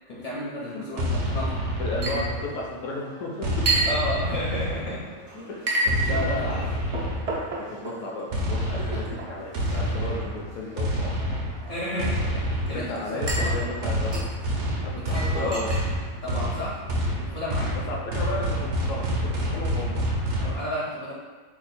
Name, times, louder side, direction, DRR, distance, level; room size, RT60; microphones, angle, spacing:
voice 1, 0.1-1.6 3.9-5.0 5.3-5.5 6.0-6.7 9.1-9.2 11.7-13.5 15.1-15.6 16.2-16.8 17.2-17.7 20.4-21.1, left 1 dB, 45° left, -7 dB, 0.6 m, -32 dB
sound 1, 1.0-2.7 3.4-5.1 5.9-7.5 8.3-20.6, equal, 65° right, 0.8 m, -28 dB
voice 2, 1.8-3.6 5.5-6.6 7.7-11.2 12.7-14.1 14.8-15.7 17.9-20.0, left 2 dB, 70° left, -2 dB, 0.9 m, -34 dB
Chink clink, 2.0-17.1, right 2 dB, 45° right, 0.4 m, -34 dB
2.8 x 2.3 x 4.1 m, 1.3 s
omnidirectional pair, 1.5 m